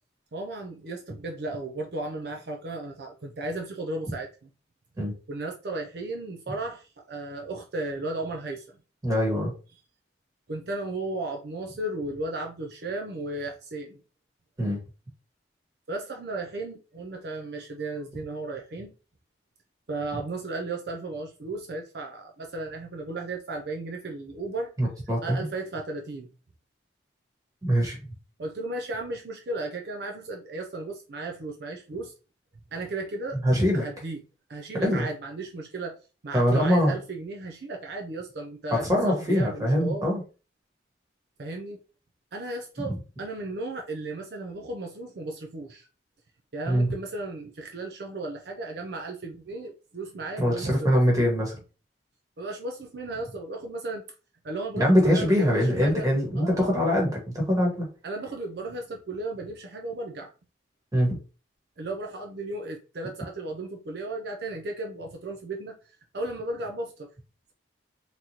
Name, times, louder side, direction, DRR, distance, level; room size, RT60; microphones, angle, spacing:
voice 1, 0.3-4.5 5.3-8.8 10.5-14.0 15.9-18.9 19.9-24.7 25.2-26.3 28.4-32.1 32.7-33.4 33.7-34.2 34.5-36.0 36.2-40.1 41.4-41.8 42.3-45.9 46.5-50.9 52.4-54.1 54.4-56.1 56.4-56.7 58.0-60.3 61.8-65.8 66.1-67.1, right 2 dB, 60° right, 0.5 m, -35 dB
voice 2, 9.0-9.5 14.6-14.8 24.8-25.4 27.6-28.0 33.4-33.8 34.8-35.1 36.3-36.9 38.8-40.2 46.7-46.9 50.4-51.5 54.7-57.9 60.9-61.2, equal, 20° right, 1.3 m, -23 dB
3.9 x 3.0 x 2.8 m
head